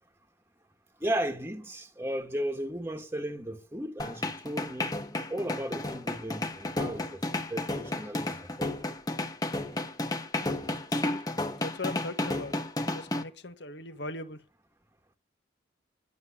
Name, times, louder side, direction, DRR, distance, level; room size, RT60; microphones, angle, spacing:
voice 1, 1.0-4.9 5.3-7.2 7.5-9.0, right 1 dB, 10° right, 1.4 m, -35 dB
sound 1, 4.0-13.2, left 2 dB, 20° left, 1.4 m, -32 dB
voice 2, 10.9-11.2 11.6-12.5 12.9-14.4, left 2 dB, 65° left, 1.7 m, -39 dB
11.5 x 8.1 x 9.8 m
head